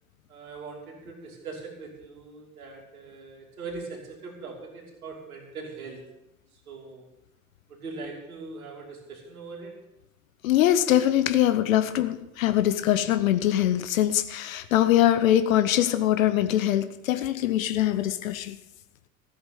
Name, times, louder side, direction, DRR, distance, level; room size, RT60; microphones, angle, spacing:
voice 1, 0.3-6.0 6.7-7.0 7.7-9.8, right 4 dB, 75° right, 0 dB, 2.9 m, -41 dB
voice 2, 10.4-18.6, left 12 dB, 70° left, 11 dB, 0.9 m, -23 dB
14.0 x 7.9 x 7.0 m, 0.88 s
figure-of-eight pair, 70°, 43 cm